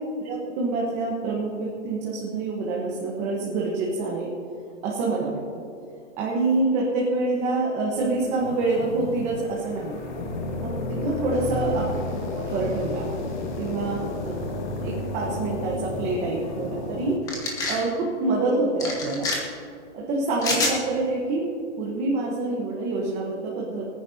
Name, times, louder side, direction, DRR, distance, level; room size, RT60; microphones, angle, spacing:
voice 1, 0.2-4.3 4.8-5.4 6.2-10.0 10.6-11.9 12.4-13.1 13.5-14.4 14.8-17.2 17.6-19.3 19.9-21.5 21.8-23.9, right 3 dB, 20° right, -4 dB, 1.2 m, -26 dB
sound 1, 7.9-17.2, left 2 dB, 40° left, 1.9 m, -32 dB
sound 2, 17.3-17.8 18.8-19.4 20.4-20.8, left 2 dB, 10° left, 1.2 m, -26 dB
23.0 x 9.6 x 2.8 m, 2.5 s
hypercardioid pair, 165°, 36 cm